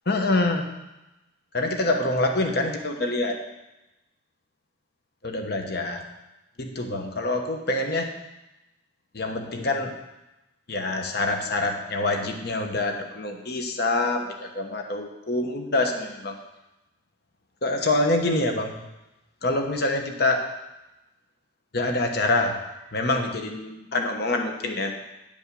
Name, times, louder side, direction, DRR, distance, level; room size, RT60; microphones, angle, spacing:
voice 1, 0.1-0.7 1.5-3.4 5.2-6.0 6.6-8.1 9.1-9.9 10.7-16.3 17.6-18.8 19.4-20.4 21.7-22.5 22.9-24.9, left 2 dB, 55° left, 4 dB, 1.1 m, -25 dB
10.5 x 5.3 x 6.8 m, 0.96 s
head